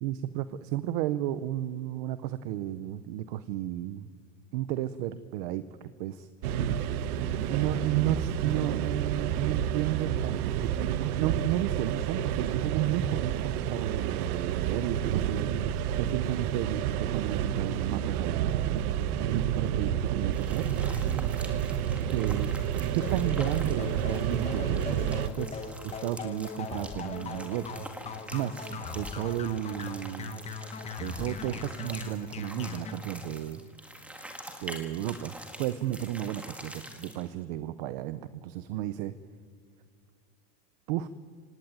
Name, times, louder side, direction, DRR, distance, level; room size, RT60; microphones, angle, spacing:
voice 1, 0.0-4.1 4.5-6.3 7.5-10.7 11.0-18.8 19.3-20.7 22.1-22.6 22.9-27.9 28.3-30.4 31.0-33.6 34.6-39.1 40.9-41.1, right 13 dB, 35° right, 14 dB, 0.6 m, -33 dB
sound 1, 6.4-25.3, right 10 dB, 65° right, 1.3 m, -30 dB
sound 2, 20.3-37.3, right 1 dB, 5° right, 1.8 m, -46 dB
sound 3, 23.0-32.9, left 5 dB, 15° left, 1.2 m, -39 dB
25.0 x 18.0 x 9.5 m, 2.1 s
supercardioid pair, 170°, 49 cm